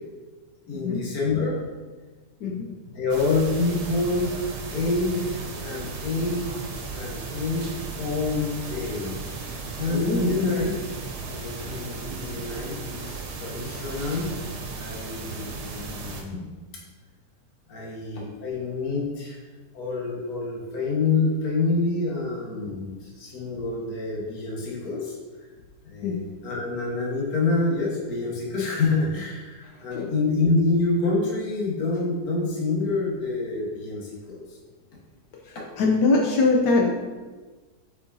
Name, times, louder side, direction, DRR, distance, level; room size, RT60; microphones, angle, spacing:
voice 1, 0.7-1.6 2.5-4.3 4.7-6.6 6.9-7.7 8.0-9.2 9.8-10.7 11.2-14.3 14.8-16.6 17.7-19.4 19.7-25.2 25.8-34.6 35.6-35.7, left 3 dB, 60° left, -4 dB, 1.7 m, -27 dB
sound 1, 3.1-16.2, right 4 dB, 75° right, 1.4 m, -35 dB
voice 2, 9.9-10.3 26.0-26.2 29.9-30.1 35.5-36.9, left 3 dB, 75° left, 0 dB, 1.3 m, -22 dB
8.0 x 4.7 x 2.6 m, 1.3 s
omnidirectional pair, 1.8 m